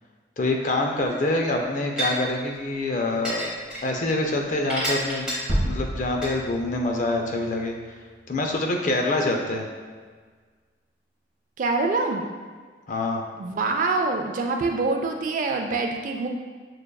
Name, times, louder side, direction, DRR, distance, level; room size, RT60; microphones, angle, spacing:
voice 1, 0.4-3.5 3.8-5.4 5.6-7.8 8.3-9.7 12.9-13.2, left 2 dB, 45° left, 1 dB, 0.5 m, -25 dB
sound 1, 1.0-1.1 2.0-2.1 3.2-3.8 4.7-5.3 6.2-6.3, right 1 dB, 5° right, 1.0 m, -28 dB
sound 2, 5.5-8.4, equal, 80° right, 0.9 m, -31 dB
voice 2, 11.6-12.2 13.4-16.3, right 3 dB, 45° right, 3 dB, 0.3 m, -25 dB
6.3 x 2.3 x 2.2 m, 1.5 s
head